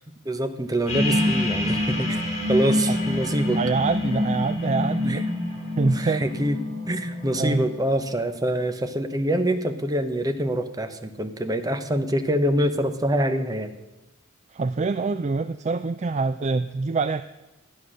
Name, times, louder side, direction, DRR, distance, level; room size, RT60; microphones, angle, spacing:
voice 1, 0.2-2.2 2.5-3.6 5.1-5.2 5.9-6.6 6.9-13.7, right 1 dB, 20° right, 7 dB, 1.0 m, -25 dB
sound 1, 0.9-7.7, left 1 dB, 35° left, 4.6 m, -26 dB
voice 2, 3.5-6.4 7.4-7.7 14.5-17.2, right 4 dB, 35° right, 12 dB, 0.4 m, -25 dB
13.5 x 9.4 x 6.4 m, 1.1 s
head